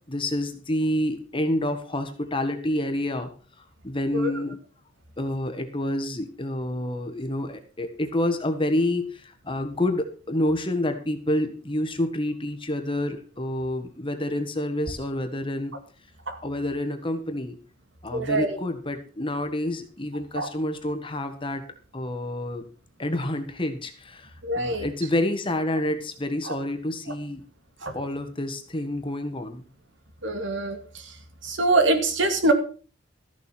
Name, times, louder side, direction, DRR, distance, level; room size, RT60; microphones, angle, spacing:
voice 1, 0.1-3.3 3.8-4.6 5.2-15.7 16.4-17.5 18.0-21.6 21.9-22.6 23.0-27.4 27.9-29.6, left 1 dB, 25° left, 7 dB, 1.6 m, -28 dB
voice 2, 18.1-18.6 20.3-20.5 24.4-24.9 26.4-26.5 27.8-27.9 30.2-30.8 31.4-32.5, right 2 dB, 75° right, 7 dB, 2.3 m, -24 dB
13.5 x 7.1 x 6.0 m, 0.38 s
head